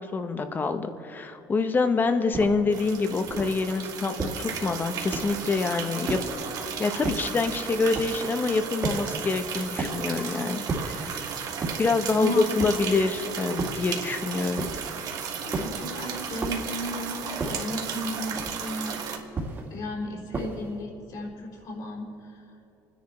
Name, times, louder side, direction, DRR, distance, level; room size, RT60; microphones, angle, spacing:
voice 1, 0.1-6.2 6.8-11.2 11.8-14.7, left 4 dB, 25° left, 8 dB, 1.0 m, -26 dB
Footsteps Mountain Boots Rock Walk Sequence Mono, 2.3-2.7 3.3-3.6 4.2-4.6 5.1-5.5 6.1-6.5 7.0-7.4 7.9-8.3 8.8-9.2 9.8-10.1 10.7-11.1 11.6-12.0 12.6-13.0 13.6-14.0 14.6-15.0 15.5-15.9 16.4-16.8 17.4-17.8 18.4-18.8 19.3-19.8 20.3-20.8, right 3 dB, 30° right, 2.2 m, -33 dB
sound 1, 2.7-19.2, right 7 dB, 55° right, 1.5 m, -35 dB
voice 2, 12.1-12.5 15.4-19.0 19.7-22.4, equal, 55° left, -1 dB, 4.2 m, -34 dB
29.0 x 10.0 x 4.4 m, 2.8 s
cardioid pair, 125°, 7 cm